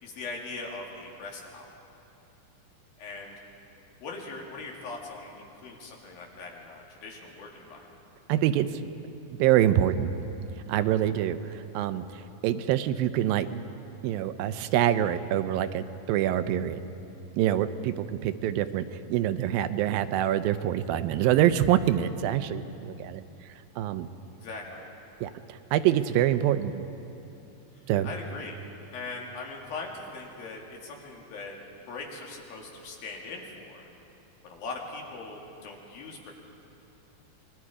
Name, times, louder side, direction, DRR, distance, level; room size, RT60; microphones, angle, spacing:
voice 1, 0.0-1.7 3.0-3.4 4.0-7.9 24.4-24.9 28.0-28.6 28.9-31.6 31.9-33.8 34.5-36.3, left 3 dB, 85° left, 0 dB, 4.0 m, -40 dB
voice 2, 8.3-8.8 9.4-10.1 10.7-12.0 12.4-13.6 14.0-16.8 17.4-18.8 19.1-23.2 23.8-24.1 25.2-25.3 25.7-26.8 27.9-28.1, right 11 dB, 90° right, 11 dB, 2.5 m, -25 dB
26.0 x 21.5 x 4.9 m, 2.8 s
omnidirectional pair, 4.1 m